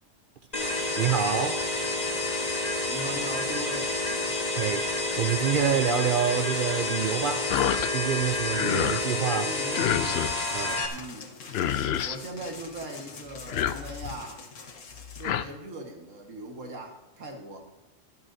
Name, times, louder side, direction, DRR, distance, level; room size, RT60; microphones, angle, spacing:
sound 1, 0.5-10.9, left 2 dB, 35° left, 1.5 m, -29 dB
voice 1, 1.0-1.7 4.5-7.6 7.9-9.5 10.5-10.9, right 8 dB, 60° right, 0.5 m, -27 dB
voice 2, 2.9-4.0 9.3-10.3 10.9-11.3 12.0-14.5 15.1-17.7, right 1 dB, 85° right, 1.9 m, -39 dB
sound 2, 7.5-7.9 8.3-9.0 9.7-10.5 11.2-11.3 11.5-12.2 13.3-14.2 15.0-15.4, left 10 dB, 65° left, 0.7 m, -28 dB
sound 3, 10.3-15.2, left 4 dB, 80° left, 1.5 m, -45 dB
21.5 x 9.5 x 2.7 m
omnidirectional pair, 1.3 m